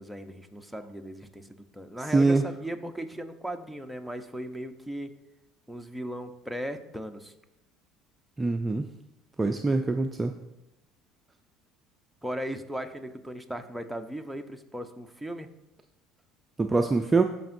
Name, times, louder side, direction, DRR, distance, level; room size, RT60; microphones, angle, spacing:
voice 1, 0.0-5.1 5.7-7.3 12.2-15.5, equal, ahead, 5 dB, 0.8 m, -37 dB
voice 2, 2.1-2.4 8.4-8.9 9.4-10.3 16.6-17.2, right 3 dB, 20° right, 6 dB, 0.4 m, -23 dB
14.5 x 5.2 x 2.6 m, 0.91 s
supercardioid pair, 90°, 0 cm